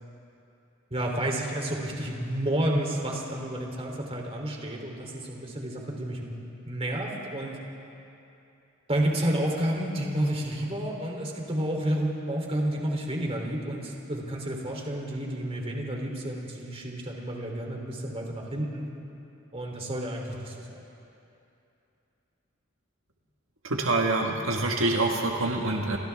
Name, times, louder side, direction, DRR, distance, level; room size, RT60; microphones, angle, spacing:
voice 1, 0.9-6.3 6.7-7.6 8.9-18.9 19.5-20.8, right 1 dB, 30° right, 0 dB, 3.2 m, -30 dB
voice 2, 23.6-26.0, right 2 dB, 80° right, 1 dB, 1.6 m, -26 dB
29.5 x 26.0 x 3.6 m, 2.8 s
head